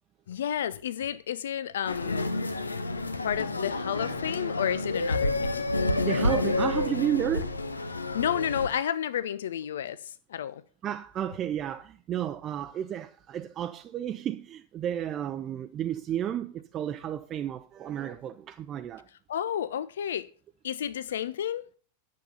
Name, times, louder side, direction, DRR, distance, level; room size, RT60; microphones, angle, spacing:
voice 1, 0.3-2.3 3.2-5.6 8.1-10.6 19.3-20.3 20.6-21.6, left 9 dB, 60° left, 0.4 m, -31 dB
sound 1, 1.9-8.7, left 2 dB, 80° left, 0.8 m, -29 dB
voice 2, 6.0-7.6 10.8-19.1, right 10 dB, 30° right, 0.6 m, -32 dB
10.5 x 7.6 x 5.6 m
figure-of-eight pair, 90°, 0 cm